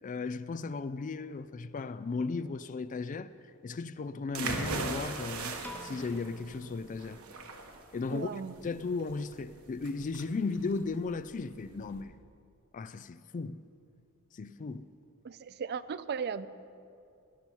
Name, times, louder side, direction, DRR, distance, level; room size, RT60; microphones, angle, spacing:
voice 1, 0.0-3.3 3.6-7.2 7.9-8.3 8.6-12.2 12.7-13.6 14.3-14.8, left 4 dB, 35° left, 0.4 m, -36 dB
sound 1, 4.3-12.0, right 3 dB, 80° right, 1.3 m, -39 dB
Piano, 5.6-7.9, equal, 5° left, 0.8 m, -50 dB
voice 2, 8.1-8.6 15.2-16.5, right 6 dB, 50° right, 0.4 m, -36 dB
16.0 x 11.0 x 4.5 m
head